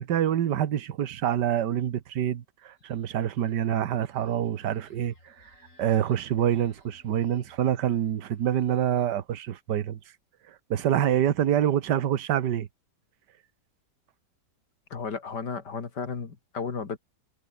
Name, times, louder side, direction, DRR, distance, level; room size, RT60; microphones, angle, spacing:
voice 1, 0.0-5.3 5.8-10.0 10.5-12.7, right 10 dB, 75° right, 1.7 m, -26 dB
sound 1, 2.7-9.3, left 1 dB, 45° left, 7.9 m, -60 dB
voice 2, 14.9-17.0, left 5 dB, 70° left, 3.1 m, -34 dB
omnidirectional pair, 1.9 m